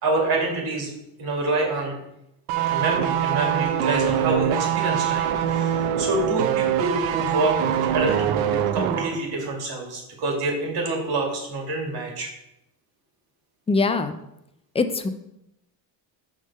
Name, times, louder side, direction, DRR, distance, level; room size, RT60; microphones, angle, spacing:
voice 1, 0.0-0.9 1.2-2.0 2.7-12.3, right 2 dB, 50° right, 0 dB, 2.4 m, -27 dB
sound 1, 2.5-9.2 9.4-9.6, right 9 dB, 90° right, 0.7 m, -24 dB
voice 2, 13.7-14.2 14.8-15.1, left 3 dB, 15° left, 10 dB, 0.3 m, -22 dB
6.4 x 3.7 x 5.4 m, 0.83 s
cardioid pair, 100°, 48 cm